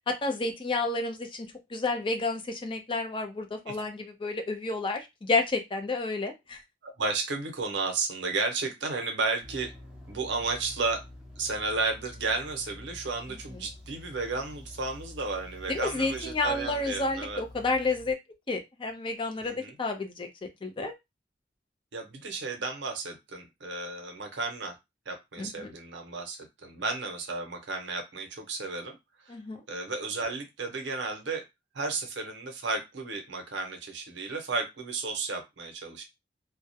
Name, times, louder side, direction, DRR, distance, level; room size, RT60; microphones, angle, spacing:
voice 1, 0.1-6.6 15.7-18.2 18.5-20.9 25.4-25.7 29.3-29.6, left 3 dB, 30° left, 4 dB, 0.4 m, -30 dB
voice 2, 6.8-9.7 10.1-11.0 11.4-17.4 19.4-19.7 21.9-24.8 25.1-29.0 29.2-29.4 29.7-31.4 31.7-36.0, right 3 dB, 70° right, 4 dB, 0.7 m, -33 dB
sound 1, 9.4-18.1, left 1 dB, 5° right, 0.7 m, -47 dB
2.3 x 2.0 x 2.7 m, 0.21 s
head